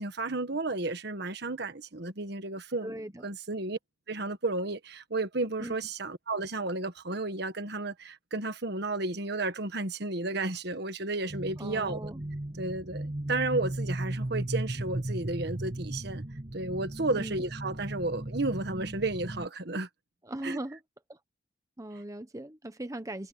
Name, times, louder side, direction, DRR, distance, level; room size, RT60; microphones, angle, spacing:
voice 1, 0.0-2.9 3.2-3.8 4.1-12.0 12.6-16.2 16.5-19.9 20.4-20.6, right 2 dB, 60° right, 1.5 m, -32 dB
voice 2, 2.8-3.3 5.6-5.7 11.6-12.2 17.1-17.4 20.2-20.8 21.1-21.2 21.8-23.3, right 1 dB, 15° right, 1.0 m, -39 dB
sound 1, 11.3-19.5, right 1 dB, 35° right, 1.4 m, -36 dB
head